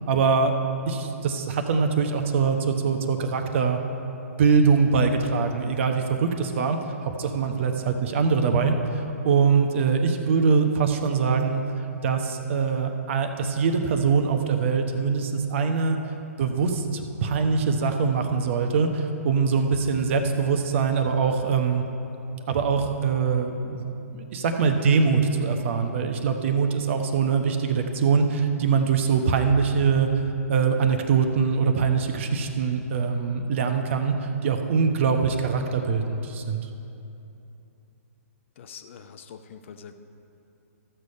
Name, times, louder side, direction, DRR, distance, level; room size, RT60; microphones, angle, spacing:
voice 1, 0.1-0.5 0.9-3.8 4.4-11.6 12.0-16.0 16.4-21.8 22.5-30.1 30.5-34.2 34.4-36.7, right 5 dB, 50° right, 6 dB, 1.0 m, -23 dB
voice 2, 38.6-40.0, left 7 dB, 55° left, 8 dB, 0.7 m, -44 dB
13.5 x 6.7 x 5.3 m, 2.9 s
hypercardioid pair, 135°, 8 cm